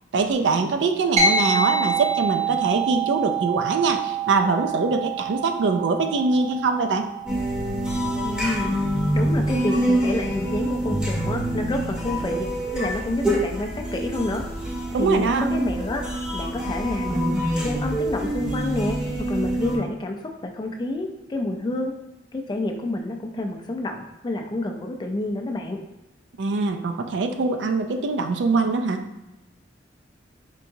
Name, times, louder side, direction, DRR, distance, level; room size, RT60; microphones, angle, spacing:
voice 1, 0.1-7.1 14.9-15.5 26.4-29.1, right 4 dB, 70° right, 6 dB, 0.4 m, -23 dB
sound 1, 1.2-10.9, right 4 dB, 40° right, 0.7 m, -28 dB
sound 2, 7.3-19.8, right 1 dB, 5° right, 0.7 m, -26 dB
voice 2, 8.2-8.7 9.1-12.5 12.7-14.4 15.0-16.0 16.3-21.9 22.3-25.8, left 2 dB, 25° left, 3 dB, 0.3 m, -29 dB
4.5 x 2.8 x 2.6 m, 0.94 s
head